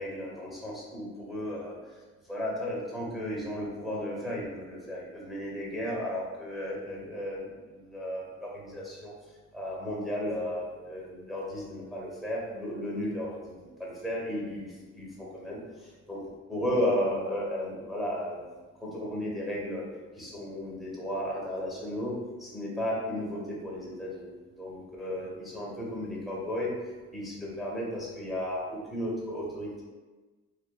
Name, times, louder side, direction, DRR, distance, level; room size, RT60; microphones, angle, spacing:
voice 1, 0.0-1.7 2.3-9.1 9.5-15.6 16.1-16.2 16.5-18.5 18.8-19.8 20.2-22.1 22.4-26.7 27.1-29.8, equal, ahead, -5 dB, 0.9 m, -34 dB
3.0 x 2.2 x 2.2 m, 1.3 s
cardioid pair, 90°, 30 cm